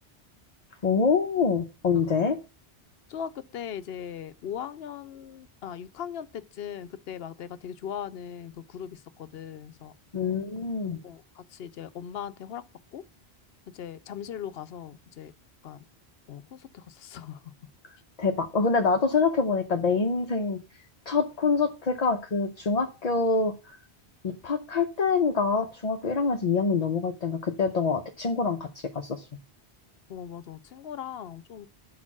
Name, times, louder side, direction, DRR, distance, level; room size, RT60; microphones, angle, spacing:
voice 1, 0.8-2.4 10.1-11.0 18.2-20.6 21.1-23.8 24.2-29.3, left 4 dB, 40° left, 0.7 m, -25 dB
voice 2, 3.1-9.9 11.0-12.6 12.9-13.0 13.7-15.3 15.6-15.8 16.3-17.5 30.1-31.7, left 9 dB, 70° left, 0.9 m, -39 dB
9.2 x 4.4 x 6.0 m
omnidirectional pair, 1.1 m